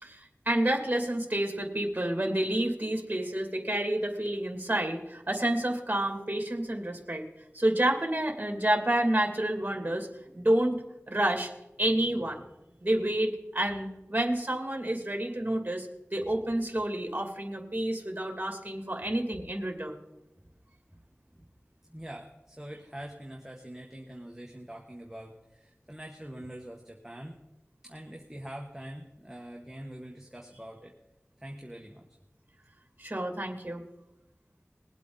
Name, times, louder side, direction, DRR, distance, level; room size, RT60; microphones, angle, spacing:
voice 1, 0.0-7.3 7.5-10.1 10.3-11.5 11.8-12.4 12.8-20.0 33.0-33.8, right 1 dB, 35° right, 3 dB, 2.6 m, -29 dB
voice 2, 21.8-27.4 27.8-30.9 31.4-32.1, right 1 dB, 10° right, 0 dB, 1.5 m, -44 dB
21.0 x 8.3 x 4.0 m, 0.93 s
wide cardioid pair, 45°, 5 cm